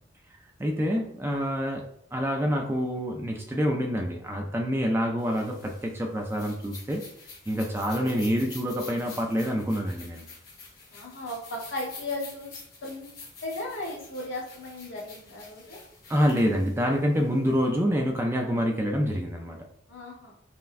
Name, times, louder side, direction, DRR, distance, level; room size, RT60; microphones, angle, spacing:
voice 1, 0.6-7.1 7.5-10.2 16.1-19.6, equal, 10° right, 2 dB, 0.3 m, -27 dB
sound 1, 5.2-17.6, left 4 dB, 50° left, 0.9 m, -47 dB
voice 2, 10.9-13.1 13.4-15.8 19.9-20.4, left 1 dB, 70° left, -3 dB, 1.1 m, -36 dB
5.4 x 2.1 x 2.5 m, 0.70 s
head